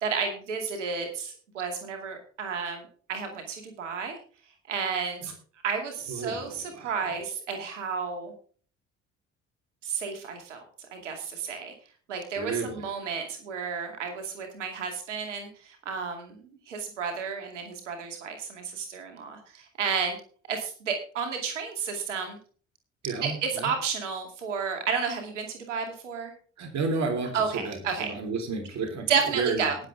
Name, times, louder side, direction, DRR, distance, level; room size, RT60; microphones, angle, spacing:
voice 1, 0.0-2.8 3.1-4.1 4.7-5.3 5.6-8.3 9.8-10.6 10.9-11.7 12.1-16.4 16.7-20.2 20.5-22.4 23.2-26.3 27.3-28.1 29.1-29.8, right 6 dB, 90° right, 4 dB, 2.5 m, -32 dB
voice 2, 6.1-7.2 12.4-12.9 23.0-23.7 26.6-29.7, right 4 dB, 50° right, 3 dB, 4.1 m, -32 dB
19.5 x 7.6 x 3.5 m, 0.42 s
hypercardioid pair, 55°, 35 cm